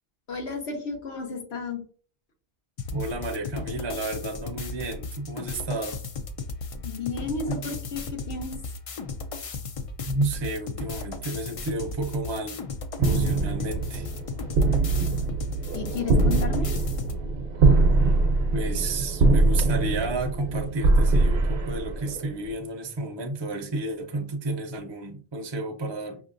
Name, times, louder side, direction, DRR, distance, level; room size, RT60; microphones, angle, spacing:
voice 1, 0.3-1.8 6.8-8.6 15.7-16.7, left 4 dB, 90° left, 1.2 m, -32 dB
sound 1, 2.8-17.2, left 3 dB, 55° left, 0.4 m, -36 dB
voice 2, 2.9-6.0 10.0-12.6 13.0-14.1 18.5-26.2, right 2 dB, 35° right, 0.4 m, -31 dB
sound 2, 13.0-22.5, right 3 dB, 70° right, 0.8 m, -23 dB
5.5 x 2.8 x 2.5 m
omnidirectional pair, 1.1 m